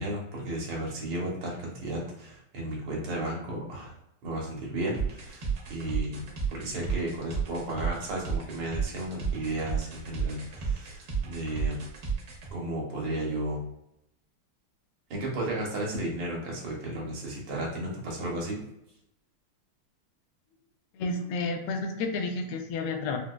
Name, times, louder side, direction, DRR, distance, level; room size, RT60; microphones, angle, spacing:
voice 1, 0.0-3.9 4.2-6.2 6.5-11.8 12.5-13.6 15.1-18.6, right 1 dB, 80° right, -3 dB, 1.8 m, -34 dB
sound 1, 4.9-12.5, right 6 dB, 60° right, 1.0 m, -32 dB
voice 2, 20.9-23.2, left 3 dB, 90° left, 4 dB, 1.5 m, -31 dB
4.7 x 2.1 x 2.2 m, 0.81 s
omnidirectional pair, 2.4 m